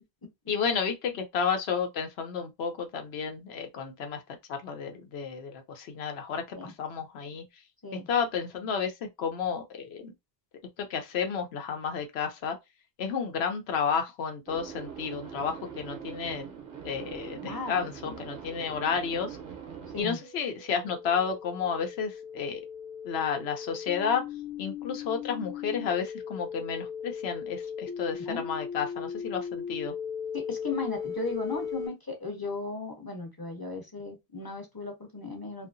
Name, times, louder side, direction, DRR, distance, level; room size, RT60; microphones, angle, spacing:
voice 1, 0.5-4.2 4.5-7.4 7.9-10.1 10.8-12.6 13.0-16.5 16.8-19.4 20.0-22.6 23.0-24.2 24.6-29.9, left 6 dB, 90° left, 0.9 m, -31 dB
sound 1, 14.5-20.0, right 7 dB, 60° right, 0.8 m, -42 dB
voice 2, 17.4-18.2 19.9-20.2 28.3-28.4 30.3-35.7, left 3 dB, 25° left, 0.6 m, -36 dB
sound 2, 18.7-31.9, left 7 dB, 60° left, 0.8 m, -38 dB
2.7 x 2.4 x 2.5 m
omnidirectional pair, 1.0 m